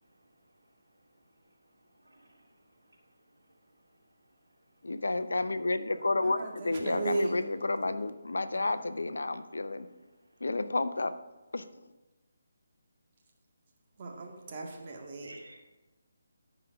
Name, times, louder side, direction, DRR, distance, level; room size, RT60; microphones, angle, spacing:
voice 1, 0.0-4.9 10.2-10.4 14.3-14.5 15.0-15.6, right 1 dB, 90° right, -1 dB, 2.6 m, -60 dB
voice 2, 4.8-9.9 10.4-11.2 11.5-11.7, left 2 dB, 75° left, 12 dB, 0.6 m, -31 dB
voice 3, 6.2-7.3 8.6-8.7 14.0-15.4, right 3 dB, 35° right, -1 dB, 1.9 m, -36 dB
13.5 x 5.0 x 4.9 m, 1.1 s
figure-of-eight pair, 150°, 0 cm